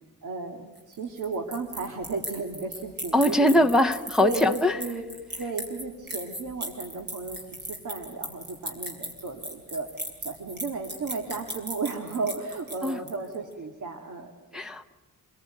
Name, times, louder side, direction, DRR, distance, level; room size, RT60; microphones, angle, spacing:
voice 1, 0.2-3.7 4.2-5.0 5.4-9.9 10.2-14.6, right 3 dB, 60° right, 2 dB, 2.5 m, -34 dB
sound 1, 0.8-13.4, equal, 30° right, 5.4 m, -37 dB
voice 2, 3.1-4.7 12.8-13.0 14.5-14.9, left 1 dB, ahead, 3 dB, 0.8 m, -22 dB
27.5 x 22.0 x 9.2 m, 1.2 s
wide cardioid pair, 180°, 35 cm